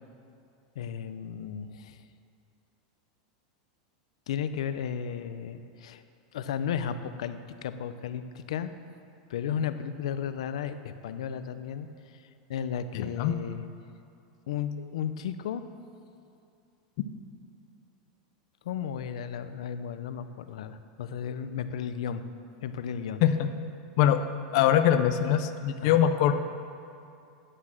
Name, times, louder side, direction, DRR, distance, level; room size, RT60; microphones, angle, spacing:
voice 1, 0.8-2.0 4.3-6.0 6.3-8.7 9.3-11.9 12.1-12.2 12.5-13.6 14.5-15.6 18.6-22.2 22.6-23.2 25.8-26.0, left 8 dB, 85° left, 11 dB, 0.7 m, -34 dB
voice 2, 12.9-13.3 23.2-23.5 24.0-24.2 24.5-26.3, left 10 dB, 45° left, 9 dB, 0.6 m, -23 dB
9.9 x 9.9 x 7.4 m, 2.5 s
supercardioid pair, 175°, 3 cm